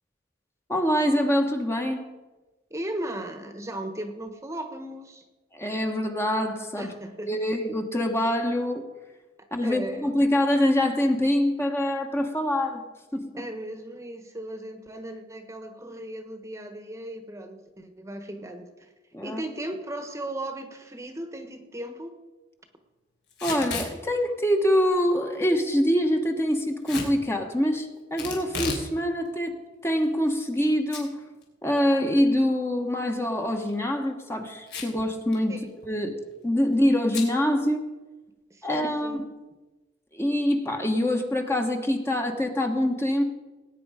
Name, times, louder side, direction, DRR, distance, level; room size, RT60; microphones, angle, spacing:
voice 1, 0.7-2.1 5.5-6.9 7.2-8.8 9.5-12.8 13.1-13.4 19.1-19.4 23.4-29.5 29.8-31.2 31.6-35.6 35.8-37.9 38.6-39.3 40.1-43.2, equal, 15° left, 3 dB, 1.2 m, -25 dB
voice 2, 2.7-5.2 6.8-7.3 9.6-10.1 13.4-18.9 19.2-22.1 35.5-35.7 38.5-39.2, right 1 dB, 15° right, 7 dB, 1.2 m, -36 dB
Packing tape duct tape / Tearing, 23.3-23.9 26.8-27.1 28.2-28.9 29.2-29.3 30.0-30.6 30.9-31.0 31.4-31.5 33.5-33.7 34.7-35.0 35.3-35.4 35.7-36.0 37.1-37.3, left 4 dB, 70° left, 3.4 m, -33 dB
19.0 x 9.3 x 5.0 m, 1.2 s
head